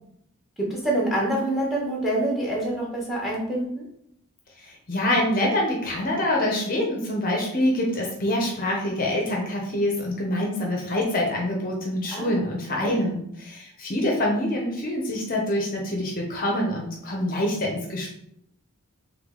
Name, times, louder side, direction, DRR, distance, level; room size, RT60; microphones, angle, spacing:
voice 1, 0.6-3.8 12.1-12.5 12.8-13.0, right 1 dB, ahead, -3 dB, 1.2 m, -26 dB
voice 2, 4.6-18.1, left 1 dB, 40° left, 0 dB, 0.7 m, -25 dB
3.6 x 3.3 x 3.7 m, 0.74 s
head